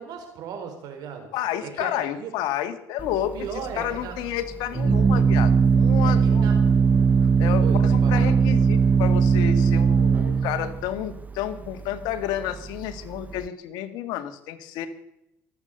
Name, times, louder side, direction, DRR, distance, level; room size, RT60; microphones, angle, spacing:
voice 1, 0.0-1.3 1.6-2.3 3.1-4.2 6.0-6.1 6.4-6.8 7.6-8.3, right 7 dB, 65° right, 5 dB, 4.8 m, -36 dB
voice 2, 1.3-3.5 3.8-6.5 7.4-14.9, left 11 dB, 75° left, 9 dB, 1.9 m, -30 dB
Organ, 3.0-13.5, right 5 dB, 20° right, 0.6 m, -20 dB
24.5 x 8.5 x 6.7 m, 0.81 s
supercardioid pair, 100°, 7 cm